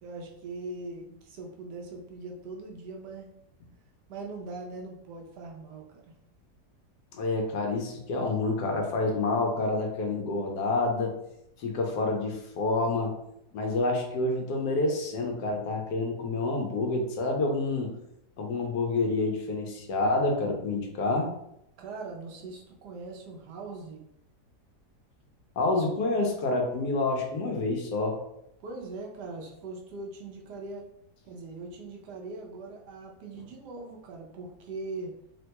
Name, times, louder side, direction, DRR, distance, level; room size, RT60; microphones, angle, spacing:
voice 1, 0.0-3.3 4.1-6.1 21.8-24.0 28.6-30.9 31.2-35.2, right 3 dB, 90° right, 0 dB, 1.3 m, -41 dB
voice 2, 7.2-11.1 11.6-13.2 13.5-17.9 18.4-21.3 25.6-28.2, left 2 dB, 85° left, 1 dB, 1.3 m, -28 dB
3.5 x 2.2 x 2.9 m, 0.78 s
omnidirectional pair, 1.7 m